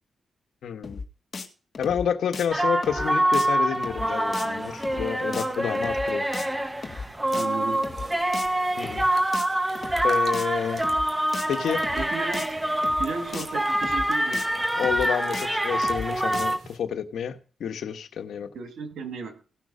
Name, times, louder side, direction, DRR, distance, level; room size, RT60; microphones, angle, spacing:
voice 1, 0.6-1.0 1.8-6.3 8.8-9.1 10.0-10.8 11.5-11.8 14.7-18.5, left 8 dB, 80° left, 8 dB, 1.4 m, -29 dB
sound 1, 0.8-1.1 1.3-1.5 1.7-2.1 2.3-2.5 2.8-3.1 3.3-3.5 3.7-4.1 4.3-4.5 4.8-5.1 5.3-5.5 5.7-6.1 6.3-6.5 6.8-7.1 7.3-7.5 7.7-8.1 8.3-8.5 8.8-9.1 9.3-9.5 9.7-10.1 10.3-10.5 10.8-11.1 11.3-11.5 11.7-12.1 12.3-12.5 12.8-13.1 13.3-13.5 13.7-14.1 14.3-14.5 14.8-15.1 15.3-15.5 15.7-16.1 16.3-16.5, left 4 dB, 45° left, 1.9 m, -36 dB
sound 2, 2.5-16.6, right 1 dB, 10° right, 0.9 m, -26 dB
sound 3, 7.3-16.8, right 2 dB, 45° right, 3.2 m, -48 dB
voice 2, 7.3-7.8 8.0-8.2 12.0-12.6 13.0-14.5 18.5-19.4, right 4 dB, 80° right, 7 dB, 2.3 m, -34 dB
17.5 x 6.3 x 5.5 m, 0.37 s
cardioid pair, 95°, 0 cm